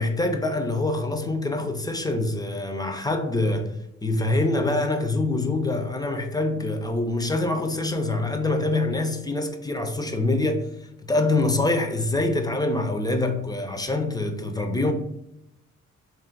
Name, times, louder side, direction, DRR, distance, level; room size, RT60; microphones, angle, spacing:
voice 1, 0.0-3.7 4.0-10.7 11.1-14.9, left 2 dB, 15° left, 0.5 m, -25 dB
3.1 x 2.6 x 4.4 m
cardioid pair, 90°, 30 cm